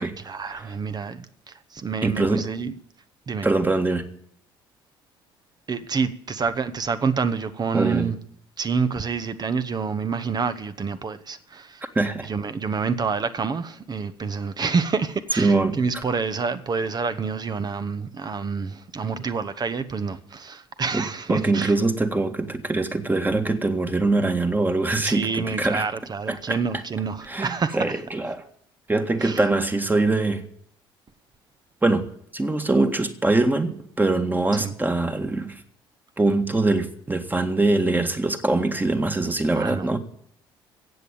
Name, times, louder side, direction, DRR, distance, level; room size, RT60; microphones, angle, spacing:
voice 1, 0.2-2.7 3.3-3.5 5.7-8.2 8.6-11.8 12.2-21.7 24.9-27.8 29.2-29.5 34.6-34.7 39.6-39.9, right 5 dB, 35° right, 1.2 m, -28 dB
voice 2, 2.0-2.4 3.4-4.0 7.7-8.1 12.0-12.3 15.4-15.8 20.9-21.0 21.3-25.9 26.3-26.6 27.3-28.4 28.9-30.4 31.8-35.6 36.2-40.0, right 2 dB, 15° right, 1.9 m, -23 dB
15.0 x 8.6 x 8.9 m
hypercardioid pair, 55°, 12 cm